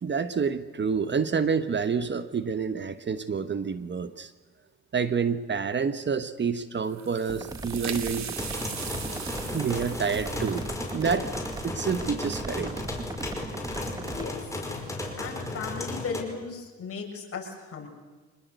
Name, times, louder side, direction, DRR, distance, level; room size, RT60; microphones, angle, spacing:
voice 1, 0.0-4.3 4.9-8.3 9.5-10.7 10.9-11.3 11.6-12.7, right 6 dB, 35° right, 12 dB, 1.2 m, -28 dB
sound 1, 6.8-12.4, right 8 dB, 65° right, 2.8 m, -40 dB
sound 2, 7.3-14.3, right 2 dB, 15° right, 0.9 m, -38 dB
sound 3, 8.4-16.2, left 2 dB, 10° left, 5.4 m, -35 dB
voice 2, 14.0-14.4 15.2-17.9, left 5 dB, 50° left, 1 dB, 6.8 m, -36 dB
26.0 x 20.0 x 8.1 m, 1.3 s
cardioid pair, 90°, 30 cm